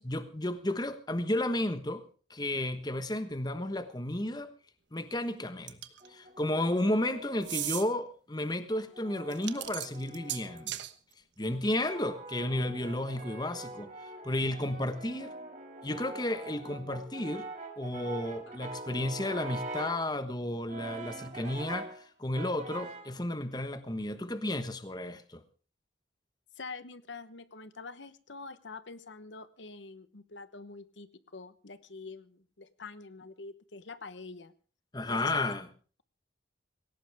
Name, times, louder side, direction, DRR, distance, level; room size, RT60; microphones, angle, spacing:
voice 1, 0.0-2.0 2.3-4.5 4.9-5.8 6.1-10.8 11.4-13.9 14.2-15.3 15.8-17.5 17.8-25.4 34.9-35.7, left 1 dB, 20° left, 10 dB, 1.2 m, -32 dB
sound 1, 5.7-6.1 7.4-7.8 9.3-10.9, right 13 dB, 75° right, 1.2 m, -36 dB
Brass instrument, 6.0-8.0 8.7-10.7 11.4-20.1 20.7-22.0 22.3-23.2, right 2 dB, 40° right, 2.4 m, -44 dB
voice 2, 26.6-34.5 35.1-35.3, left 3 dB, 80° left, 13 dB, 1.1 m, -46 dB
20.0 x 17.5 x 3.5 m, 0.38 s
head